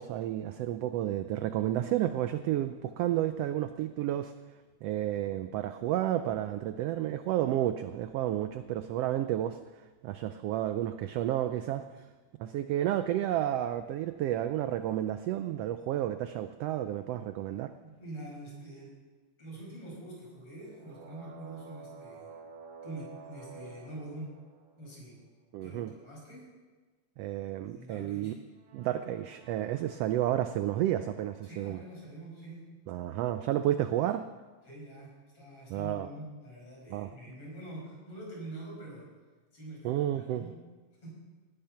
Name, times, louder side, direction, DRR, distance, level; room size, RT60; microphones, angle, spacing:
voice 1, 0.0-4.3 4.8-9.6 10.0-11.8 12.4-17.7 25.5-25.9 27.2-28.3 28.7-31.8 32.9-34.2 35.7-36.1 36.9-37.1 39.8-40.4, right 12 dB, 85° right, 10 dB, 1.4 m, -31 dB
voice 2, 17.8-18.9 19.4-22.3 22.8-24.3 24.8-25.2 25.6-26.4 27.6-28.3 31.4-32.6 34.6-39.1 39.5-40.6 41.0-41.1, right 1 dB, 50° left, -4 dB, 6.6 m, -45 dB
sound 1, 20.6-25.2 28.5-31.4, right 5 dB, 70° right, 2.6 m, -51 dB
17.5 x 10.5 x 5.8 m, 1.3 s
omnidirectional pair, 3.3 m